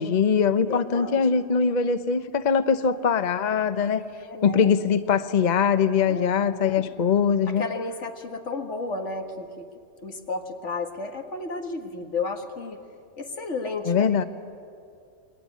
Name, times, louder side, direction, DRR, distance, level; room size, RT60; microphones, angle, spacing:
voice 1, 0.0-4.0 4.4-7.6 13.9-14.2, left 6 dB, 40° left, 11 dB, 0.9 m, -22 dB
voice 2, 0.7-1.4 3.7-4.7 6.1-6.9 7.5-9.7 10.0-12.8 13.2-14.2, left 3 dB, 85° left, 4 dB, 2.3 m, -33 dB
28.5 x 22.0 x 9.4 m, 2.4 s
omnidirectional pair, 1.2 m